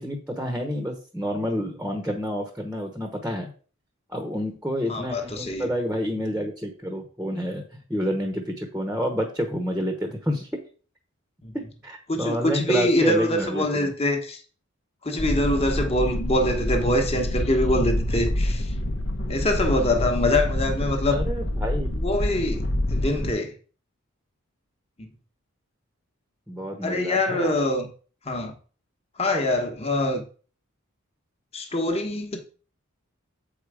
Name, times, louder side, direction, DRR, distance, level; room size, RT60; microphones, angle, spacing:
voice 1, 0.0-3.5 4.1-7.6 7.9-10.5 11.8-13.9 21.1-21.9 26.5-27.5, equal, 5° right, 0.9 m, -29 dB
voice 2, 4.9-5.7 11.4-11.6 12.1-14.4 15.0-18.7 19.3-21.2 21.9-23.5 25.0-25.1 26.8-27.9 28.2-28.5 29.2-30.2 31.5-32.4, left 1 dB, 30° left, 1.2 m, -24 dB
sound 1, 15.2-23.3, left 1 dB, 55° left, 0.9 m, -27 dB
7.8 x 4.8 x 4.9 m
head